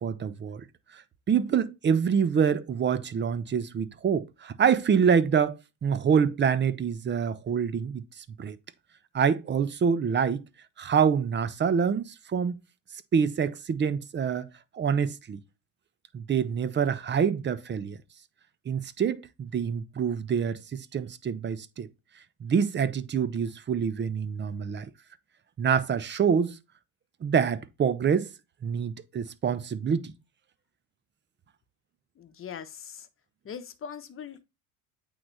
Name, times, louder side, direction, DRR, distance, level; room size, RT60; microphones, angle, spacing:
voice 1, 0.0-0.6 0.9-8.6 9.1-10.4 10.8-12.6 13.1-14.5 14.7-15.4 16.1-18.0 18.7-21.9 22.4-24.9 25.6-26.6 27.2-28.3 28.6-30.1, right 7 dB, 25° right, 0.8 m, -26 dB
voice 2, 32.2-33.1 33.4-34.4, left 7 dB, 30° left, 1.1 m, -41 dB
8.6 x 4.0 x 3.3 m
hypercardioid pair, 85°, 43 cm